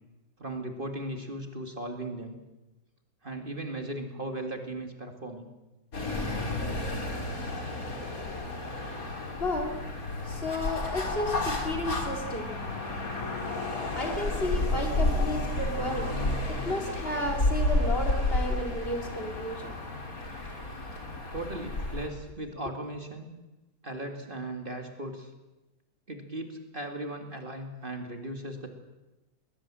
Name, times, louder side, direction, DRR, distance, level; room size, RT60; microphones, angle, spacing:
voice 1, 0.4-2.4 3.2-5.5 21.3-23.3 23.8-25.3 26.1-28.7, right 1 dB, 35° right, 2.3 m, -37 dB
sound 1, 5.9-22.1, left 2 dB, 65° left, 3.8 m, -31 dB
voice 2, 9.4-13.6 13.9-19.8, left 1 dB, 40° left, 2.7 m, -33 dB
21.0 x 20.0 x 7.5 m
omnidirectional pair, 1.6 m